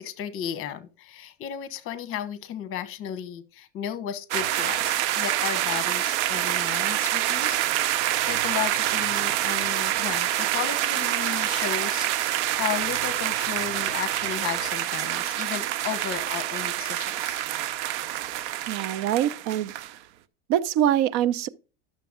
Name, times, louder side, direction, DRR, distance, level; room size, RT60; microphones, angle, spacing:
voice 1, 0.0-17.4, left 10 dB, 40° left, 1.2 m, -34 dB
sound 1, 4.3-19.9, right 13 dB, 85° right, 0.8 m, -27 dB
voice 2, 18.7-19.7 20.5-21.5, right 11 dB, 55° right, 0.7 m, -24 dB
11.0 x 6.8 x 3.7 m
supercardioid pair, 145°, 34 cm